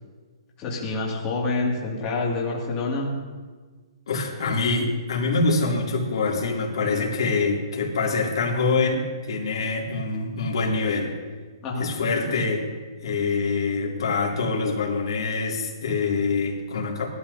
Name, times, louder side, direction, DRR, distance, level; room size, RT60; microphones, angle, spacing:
voice 1, 0.6-3.1 11.6-11.9, left 3 dB, 20° left, -4 dB, 2.4 m, -27 dB
voice 2, 4.1-11.1 11.8-12.7 13.0-17.1, left 3 dB, 65° left, -2 dB, 2.9 m, -25 dB
19.5 x 12.5 x 2.8 m, 1.4 s
hypercardioid pair, 170°, 3 cm